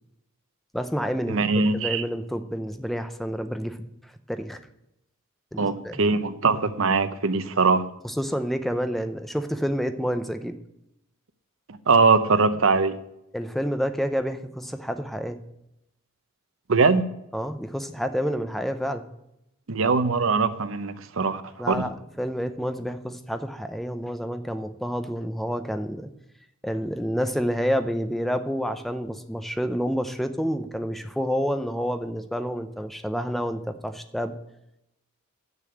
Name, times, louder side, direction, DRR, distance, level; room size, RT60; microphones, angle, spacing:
voice 1, 0.7-1.4 1.7-4.6 5.5-5.9 8.0-10.6 13.3-15.4 17.3-19.0 21.6-26.1 26.6-34.4, equal, ahead, 0.6 m, -29 dB
voice 2, 1.3-2.0 5.6-7.8 11.7-13.0 16.7-17.0 19.7-21.8, right 4 dB, 65° right, 0.7 m, -22 dB
6.9 x 6.8 x 7.8 m
head